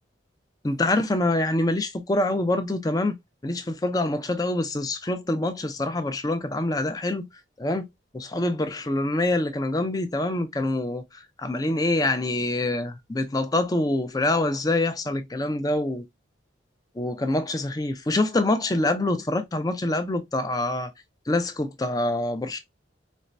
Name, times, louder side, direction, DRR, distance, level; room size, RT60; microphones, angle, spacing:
voice 1, 0.6-3.2 3.4-7.3 7.6-7.9 8.1-11.0 11.4-16.0 17.0-20.9 21.3-22.6, left 2 dB, 20° left, 0.5 m, -25 dB
4.3 x 2.1 x 2.5 m
head